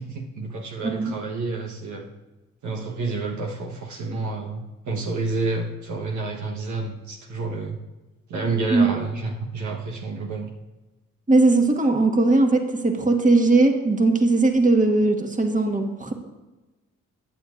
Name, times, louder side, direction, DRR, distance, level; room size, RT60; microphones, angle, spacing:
voice 1, 0.0-2.1 2.6-7.8 8.3-10.5, right 3 dB, 65° right, 0 dB, 1.2 m, -29 dB
voice 2, 0.8-1.2 8.7-8.9 11.3-16.1, right 2 dB, 25° right, 3 dB, 1.6 m, -19 dB
15.0 x 8.9 x 2.6 m, 1.1 s
supercardioid pair, 45°, 31 cm